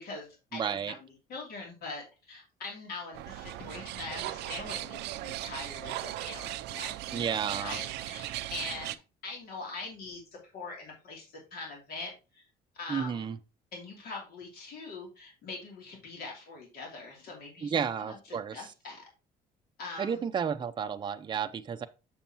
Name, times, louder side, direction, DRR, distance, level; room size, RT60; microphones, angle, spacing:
voice 1, 0.0-12.4 12.7-13.3 13.7-19.0 19.8-20.2, left 3 dB, 65° left, 2.9 m, -43 dB
voice 2, 0.5-0.9 7.1-7.8 12.9-13.4 17.6-18.6 20.0-21.9, right 7 dB, 25° right, 0.6 m, -32 dB
sound 1, 3.1-8.9, right 15 dB, 85° right, 0.5 m, -38 dB
7.0 x 6.9 x 2.9 m
cardioid pair, 110°, 17 cm